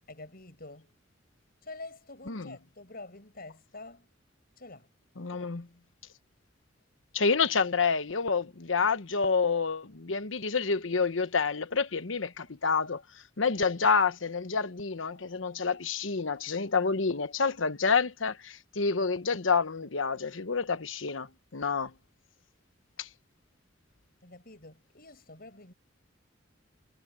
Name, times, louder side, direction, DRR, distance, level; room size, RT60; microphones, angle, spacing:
voice 1, 0.1-0.9 1.6-4.1 4.6-4.9 24.2-25.7, left 2 dB, 50° left, 7.2 m, -47 dB
voice 2, 5.2-5.7 7.1-13.0 13.4-21.9 23.0-23.1, left 5 dB, 80° left, 1.1 m, -28 dB
head